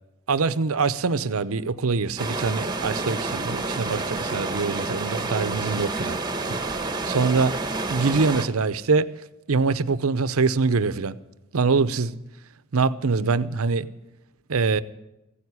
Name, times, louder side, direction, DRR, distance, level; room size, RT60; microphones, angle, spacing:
voice 1, 0.3-6.2 6.5-7.5 7.9-9.1 9.5-11.2 11.5-12.2 12.7-13.9 14.5-14.8, right 4 dB, 90° right, 0.7 m, -24 dB
sound 1, 2.2-8.5, right 3 dB, 20° right, 1.1 m, -29 dB
16.0 x 9.4 x 9.7 m
head